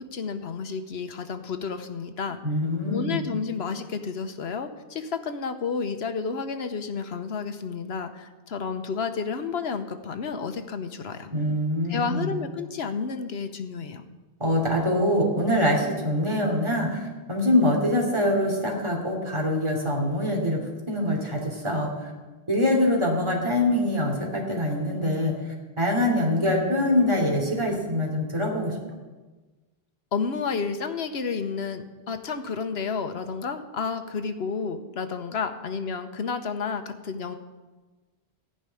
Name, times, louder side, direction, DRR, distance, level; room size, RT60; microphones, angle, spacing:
voice 1, 0.0-2.4 2.9-11.3 11.9-14.1 30.1-37.4, left 5 dB, 70° left, 8 dB, 1.1 m, -31 dB
voice 2, 2.4-3.3 11.3-12.4 14.4-22.1 22.5-25.3 25.8-28.8, left 1 dB, 25° right, -1 dB, 2.9 m, -24 dB
15.0 x 5.5 x 9.7 m, 1.2 s
omnidirectional pair, 1.1 m